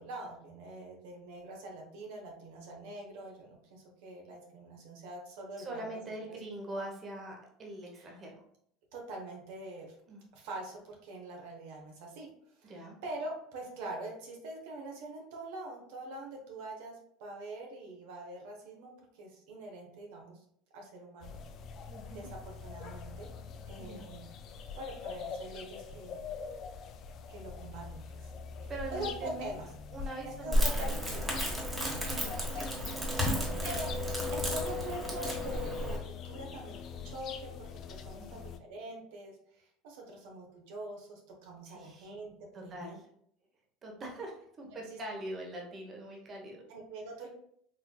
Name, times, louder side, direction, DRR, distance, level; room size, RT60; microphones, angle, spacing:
voice 1, 0.0-6.1 8.0-8.2 8.9-9.9 10.3-12.3 12.6-20.4 20.7-21.4 22.1-23.3 23.7-24.3 24.7-26.2 27.3-28.3 28.6-29.7 30.4-30.7 31.3-31.5 32.5-32.6 33.6-37.5 37.9-43.0 44.6-45.0 46.7-47.3, right 2 dB, 75° right, 0 dB, 0.9 m, -44 dB
voice 2, 5.6-8.4 10.1-10.2 12.6-13.0 21.9-22.3 23.8-24.1 28.7-29.5 29.9-31.4 32.1-32.3 38.1-38.5 41.6-42.1 42.5-43.0 43.8-46.6, right 2 dB, 35° right, 0 dB, 0.9 m, -43 dB
Las Cruces morning doves, 21.2-38.6, left 6 dB, 50° left, 0.4 m, -44 dB
Crackle, 30.5-36.0, equal, 20° right, 1.2 m, -32 dB
4.2 x 2.6 x 2.2 m, 0.66 s
supercardioid pair, 95°, 0 cm